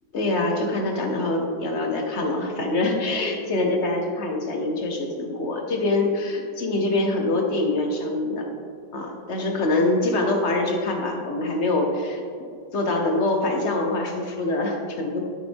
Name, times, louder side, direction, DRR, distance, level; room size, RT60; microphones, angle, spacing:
voice 1, 0.1-8.5 8.9-12.2 12.7-15.2, left 2 dB, 50° left, 2 dB, 1.0 m, -24 dB
12.5 x 5.3 x 3.5 m, 2.4 s
omnidirectional pair, 1.9 m